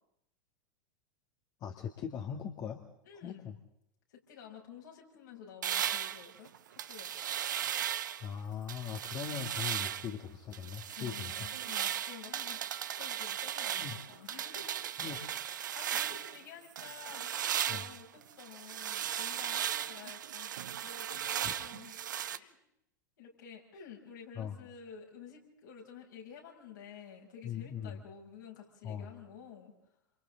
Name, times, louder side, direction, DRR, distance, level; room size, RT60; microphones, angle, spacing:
voice 1, 1.6-2.8 3.2-3.6 8.2-11.5 11.8-12.0 13.0-13.1 13.8-14.0 15.0-15.4 17.7-17.9 21.4-21.5 24.4-24.6 27.4-28.0 28.8-29.1, left 8 dB, 35° left, 3 dB, 2.1 m, -40 dB
voice 2, 3.0-3.5 4.1-6.5 6.9-7.1 10.9-14.8 15.1-15.3 15.7-20.5 20.8-21.9 22.3-22.6 23.2-29.7, left 7 dB, 65° left, -1 dB, 6.8 m, -51 dB
sound 1, 5.6-8.3 8.7-10.1 10.5-16.4 16.8-22.4, right 10 dB, 70° right, 0.8 m, -36 dB
28.0 x 28.0 x 3.9 m, 0.77 s
figure-of-eight pair, 90°, 10 cm